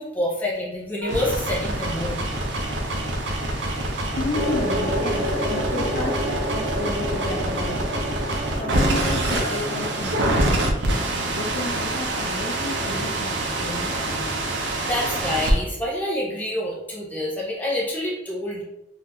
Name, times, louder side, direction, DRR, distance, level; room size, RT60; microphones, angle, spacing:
voice 1, 0.0-2.2 14.6-18.6, left 1 dB, 10° left, -4 dB, 0.8 m, -27 dB
sound 1, 1.0-15.5, right 1 dB, 85° right, 0.5 m, -26 dB
voice 2, 4.2-8.2 8.6-13.9, left 2 dB, 40° left, -1 dB, 0.3 m, -32 dB
sound 2, 4.3-10.5, equal, 55° right, 1.4 m, -29 dB
2.7 x 2.0 x 3.5 m, 0.90 s
head